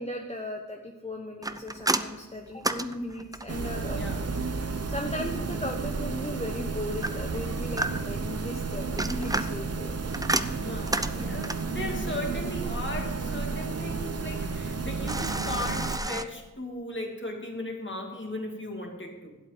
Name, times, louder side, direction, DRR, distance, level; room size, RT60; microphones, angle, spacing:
voice 1, 0.0-4.0 4.9-9.9, left 1 dB, 20° left, 1 dB, 1.0 m, -37 dB
sound 1, 1.4-3.7 7.0-8.3 8.8-11.8 15.1-16.2, right 2 dB, 10° right, 0.6 m, -31 dB
sound 2, 3.5-16.0, right 4 dB, 50° right, 0.8 m, -32 dB
voice 2, 3.9-4.3 10.5-19.4, left 1 dB, 35° left, 1 dB, 2.4 m, -37 dB
12.0 x 8.0 x 5.1 m, 1.2 s
cardioid pair, 45°, 32 cm